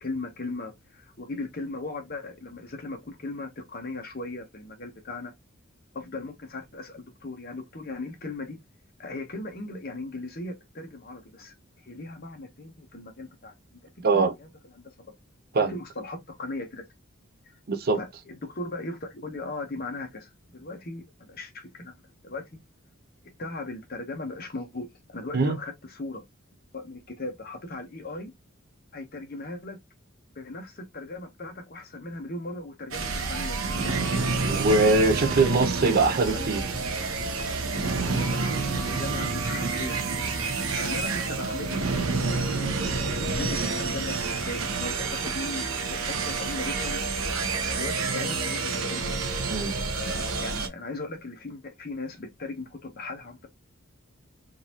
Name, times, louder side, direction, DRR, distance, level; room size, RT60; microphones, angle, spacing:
voice 1, 0.0-5.3 5.9-8.6 9.0-13.8 14.1-14.5 14.7-14.9 15.7-16.8 17.4-17.5 18.0-21.9 22.2-22.4 23.4-26.2 26.7-28.3 28.9-29.8 30.3-33.8 35.1-35.5 35.9-36.0 36.3-36.5 38.0-40.2 40.8-42.1 42.3-47.0 47.7-49.1 49.9-53.5, left 2 dB, 50° left, 1.0 m, -38 dB
voice 2, 14.0-14.3 15.5-15.7 17.7-18.0 25.3-25.6 34.5-36.6 49.5-49.7, right 3 dB, 50° right, 0.5 m, -22 dB
sound 1, 32.9-50.7, right 4 dB, 85° right, 0.9 m, -28 dB
3.9 x 2.6 x 2.9 m
head